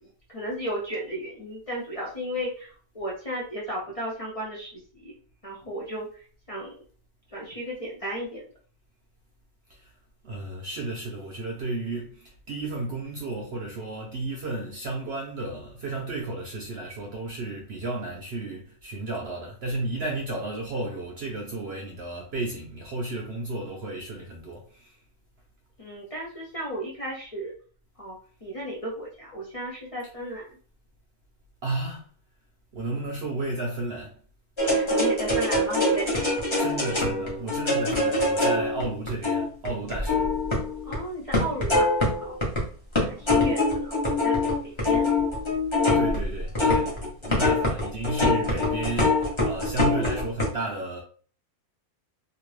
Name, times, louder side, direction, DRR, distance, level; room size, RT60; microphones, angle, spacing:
voice 1, 0.0-5.2 5.4-6.7 7.3-8.5 25.8-27.5 28.0-30.4 34.6-36.7 40.8-42.3 43.0-44.4 44.6-45.1, right 1 dB, 50° left, 0.4 m, -34 dB
voice 2, 10.2-25.0 31.6-32.1 32.7-34.2 36.6-40.4 44.8-44.9 45.9-51.0, right 2 dB, 60° right, 0.7 m, -33 dB
sound 1, 34.6-41.0 41.3-42.6 43.0-50.5, left 2 dB, 25° left, 0.8 m, -24 dB
2.8 x 2.5 x 3.1 m
omnidirectional pair, 1.6 m